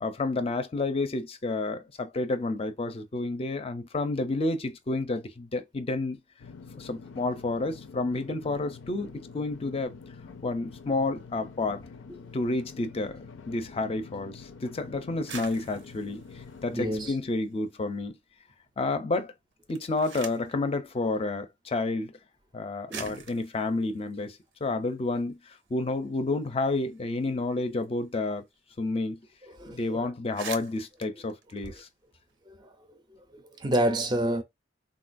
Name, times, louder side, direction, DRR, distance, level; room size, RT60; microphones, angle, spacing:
voice 1, 0.0-6.2 6.8-9.9 10.4-11.8 12.3-16.2 16.6-18.1 18.8-19.3 19.7-22.2 22.5-28.4 28.8-29.2 29.7-31.9, left 2 dB, 30° left, 0.5 m, -30 dB
sound 1, 6.4-17.1, left 4 dB, 85° left, 0.5 m, -47 dB
sound 2, 15.1-17.7 18.0-18.7 19.5-20.6 21.6-21.7 22.5-22.6 22.9-25.2 25.6-25.7 25.9-28.5 28.8-28.9 29.2-29.5 29.8-29.9 30.2-32.4, right 6 dB, 75° right, 0.6 m, -46 dB
voice 2, 16.7-17.1 22.9-23.1 29.6-30.1 32.5-32.7 33.1-34.4, right 1 dB, 25° right, 0.4 m, -29 dB
3.7 x 2.2 x 2.5 m
head